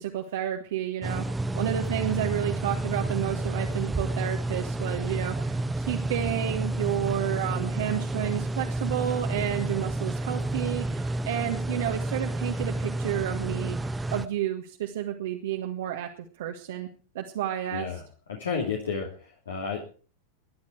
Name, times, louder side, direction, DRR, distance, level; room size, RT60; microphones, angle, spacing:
voice 1, 0.0-16.1 16.4-16.9 17.2-17.9, right 11 dB, 55° right, 3 dB, 1.7 m, -31 dB
sound 1, 1.0-14.3, right 2 dB, 10° right, 0.7 m, -30 dB
voice 2, 17.7-18.0 18.3-19.8, left 5 dB, 65° left, 0 dB, 2.7 m, -32 dB
21.0 x 10.5 x 4.6 m, 0.39 s
figure-of-eight pair, 90°, 0 cm